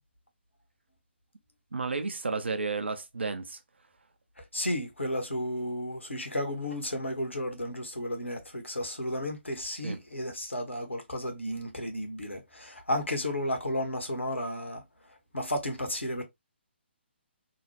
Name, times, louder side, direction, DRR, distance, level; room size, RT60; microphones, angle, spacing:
voice 1, 1.7-3.6 9.8-10.0, right 4 dB, 70° right, 0.6 m, -32 dB
voice 2, 4.4-14.8 15.3-16.2, left 1 dB, 85° left, 1.0 m, -33 dB
2.9 x 2.1 x 2.8 m
figure-of-eight pair, 135°, 6 cm